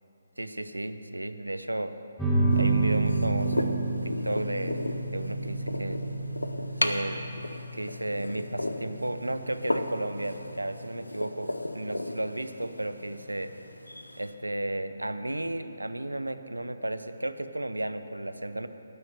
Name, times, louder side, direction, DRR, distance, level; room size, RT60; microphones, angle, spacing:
voice 1, 0.4-1.9 2.5-4.8 5.1-6.0 6.8-7.3 7.7-13.5 14.2-18.7, right 1 dB, 80° right, 10 dB, 0.6 m, -33 dB
sound 1, 2.2-13.2, right 3 dB, ahead, 1.8 m, -31 dB
sound 2, 2.5-14.3, left 1 dB, 80° left, 0.8 m, -36 dB
11.5 x 7.7 x 7.9 m, 3.0 s
figure-of-eight pair, 140°, 0 cm